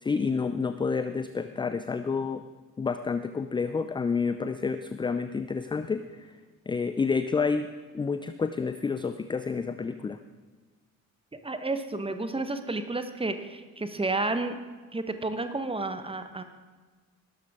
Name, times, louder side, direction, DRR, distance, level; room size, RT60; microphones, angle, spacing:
voice 1, 0.0-2.4 2.8-6.3 6.7-7.7 7.9-10.2, left 5 dB, 10° left, 10 dB, 0.4 m, -29 dB
voice 2, 11.3-14.6 14.9-16.4, right 2 dB, 15° right, 9 dB, 1.2 m, -31 dB
18.5 x 12.5 x 3.7 m, 1.4 s
figure-of-eight pair, 50°, 42 cm